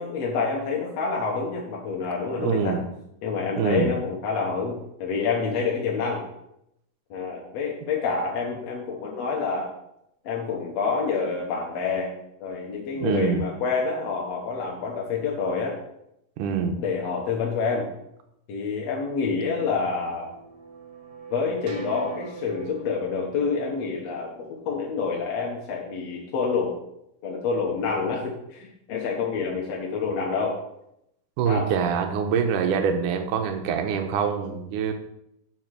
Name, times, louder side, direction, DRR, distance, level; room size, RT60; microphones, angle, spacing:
voice 1, 0.0-2.8 3.2-6.2 7.1-9.7 10.2-12.1 12.4-15.8 16.8-17.9 18.5-20.3 21.3-24.3 24.7-26.7 27.2-30.6 31.5-31.7, left 5 dB, 60° left, -3 dB, 2.0 m, -27 dB
voice 2, 2.4-2.8 3.6-3.9 13.0-13.4 16.4-16.8 31.4-34.9, right 6 dB, 75° right, 6 dB, 2.3 m, -25 dB
sound 1, 19.5-25.1, right 5 dB, 50° right, 1.5 m, -42 dB
7.7 x 5.1 x 6.4 m, 0.80 s
omnidirectional pair, 4.0 m